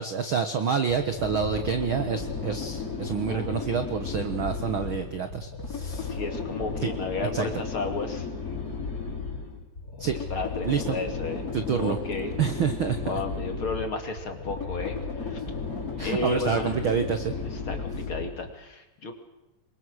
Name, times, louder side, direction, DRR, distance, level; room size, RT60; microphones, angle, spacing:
voice 1, 0.0-6.2 6.8-6.9 7.3-7.5 10.0-10.2 10.6-11.0 11.5-12.0 12.4-13.1 16.0-17.3, right 7 dB, 75° right, 8 dB, 1.1 m, -28 dB
sound 1, 0.9-18.5, left 4 dB, 20° left, 5.6 m, -34 dB
voice 2, 6.1-8.3 10.3-11.4 11.8-12.3 13.0-15.4 16.0-16.8 17.7-19.1, left 3 dB, 40° left, 6 dB, 2.8 m, -32 dB
27.5 x 23.0 x 6.4 m, 0.95 s
omnidirectional pair, 4.2 m